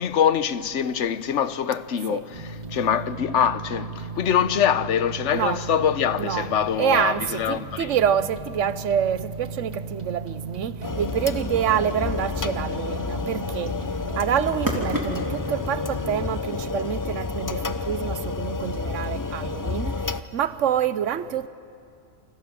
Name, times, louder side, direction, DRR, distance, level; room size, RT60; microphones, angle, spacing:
voice 1, 0.0-7.9, left 8 dB, 70° left, 1.1 m, -24 dB
sound 1, 2.3-16.3, right 2 dB, 35° right, 2.1 m, -37 dB
sound 2, 2.7-15.5, equal, 15° right, 3.3 m, -40 dB
voice 2, 5.3-5.6 6.2-6.5 6.8-13.7 14.1-20.0 20.3-21.5, right 9 dB, 75° right, 1.2 m, -26 dB
sound 3, 10.8-20.2, left 4 dB, 30° left, 0.3 m, -30 dB
28.0 x 27.5 x 7.6 m
omnidirectional pair, 1.3 m